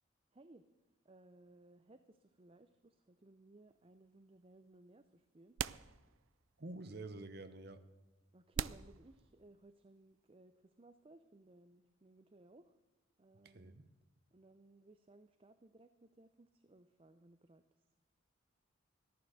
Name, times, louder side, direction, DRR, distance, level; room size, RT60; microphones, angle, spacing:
voice 1, 0.3-0.6 1.0-5.6 8.3-12.8 13.2-13.8 14.3-17.6, right 2 dB, 30° right, 10 dB, 0.5 m, -62 dB
sound 1, 3.7-3.8 4.9-5.0 5.6-6.5 6.8-6.9 7.6-7.7 8.5-9.8, right 9 dB, 80° right, 0.4 m, -43 dB
voice 2, 6.6-7.8 13.4-13.9, right 2 dB, 50° right, 10 dB, 1.0 m, -48 dB
14.0 x 11.5 x 6.6 m, 1.2 s
head